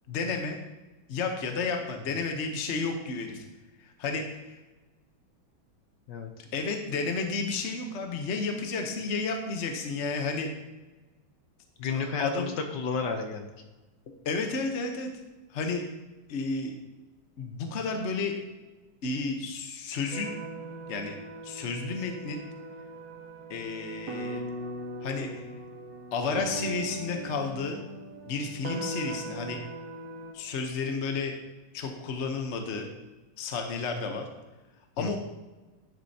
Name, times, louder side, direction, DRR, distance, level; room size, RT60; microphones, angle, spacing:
voice 1, 0.1-0.6 1.1-3.4 4.0-4.6 6.5-10.5 11.9-12.5 14.2-15.1 15.5-15.8 16.3-16.7 17.4-18.4 19.0-20.3 20.9-21.2 21.4-22.4 23.5-24.4 25.0-25.5 26.1-27.8 28.3-29.6 30.3-31.3 31.7-32.9 33.4-34.2 35.0-35.2, left 4 dB, 50° left, 3 dB, 0.9 m, -31 dB
voice 2, 11.8-13.5 35.0-35.2, left 5 dB, 65° left, 5 dB, 1.3 m, -31 dB
sound 1, 20.1-30.3, right 2 dB, 50° right, 1.6 m, -39 dB
11.0 x 7.7 x 2.8 m, 1.2 s
omnidirectional pair, 2.3 m